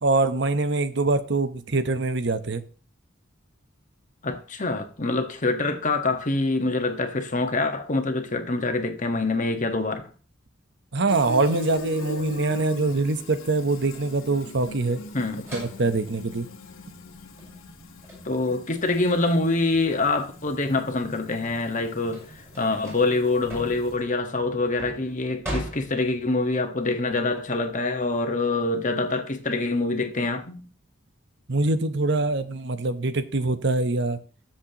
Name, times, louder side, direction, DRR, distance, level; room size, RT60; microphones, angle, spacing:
voice 1, 0.0-2.6 10.9-15.0 15.5-16.5 31.5-34.2, right 3 dB, 60° right, 0.9 m, -24 dB
voice 2, 4.2-10.0 15.1-15.5 18.2-30.6, left 2 dB, 40° left, 1.5 m, -25 dB
Fill (with liquid), 11.1-24.2, left 1 dB, 85° left, 1.8 m, -41 dB
sound 1, 15.5-20.5 20.9-26.5, right 1 dB, 15° right, 7.8 m, -40 dB
21.0 x 7.5 x 3.0 m
head